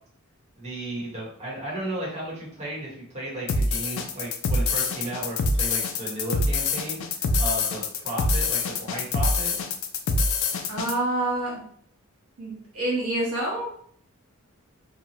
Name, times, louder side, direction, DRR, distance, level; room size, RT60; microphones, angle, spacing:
voice 1, 0.6-7.0 7.4-9.5, right 1 dB, 30° right, -6 dB, 1.0 m, -34 dB
sound 1, 3.5-10.9, left 3 dB, 65° left, 0.3 m, -25 dB
voice 2, 10.7-11.6 12.4-13.7, right 1 dB, 80° right, -4 dB, 1.1 m, -27 dB
2.7 x 2.1 x 2.8 m, 0.63 s
head